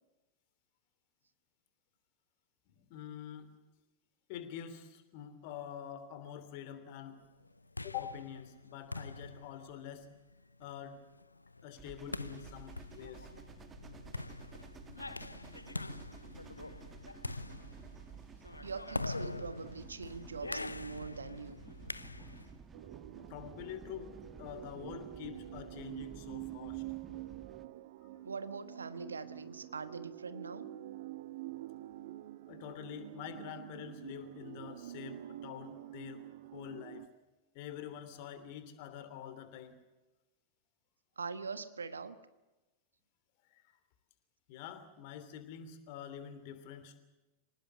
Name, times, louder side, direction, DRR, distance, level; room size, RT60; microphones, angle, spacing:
voice 1, 2.7-3.5 4.3-7.2 7.8-10.1 10.6-11.0 11.6-13.3 23.2-26.8 32.5-36.2 36.5-37.1 37.5-39.8 43.5-43.6 44.5-47.0, left 9 dB, 50° left, 11 dB, 3.0 m, -46 dB
sound 1, 7.4-22.6, left 2 dB, 80° left, 0.7 m, -44 dB
sound 2, 11.8-27.7, right 6 dB, 20° right, 1.4 m, -53 dB
voice 2, 18.6-21.6 22.3-22.4 28.2-30.7 41.2-42.2, right 5 dB, 75° right, 13 dB, 1.3 m, -43 dB
sound 3, 22.7-37.1, right 14 dB, 55° right, 0.9 m, -47 dB
25.5 x 19.0 x 8.0 m, 1.1 s
figure-of-eight pair, 90°, 0 cm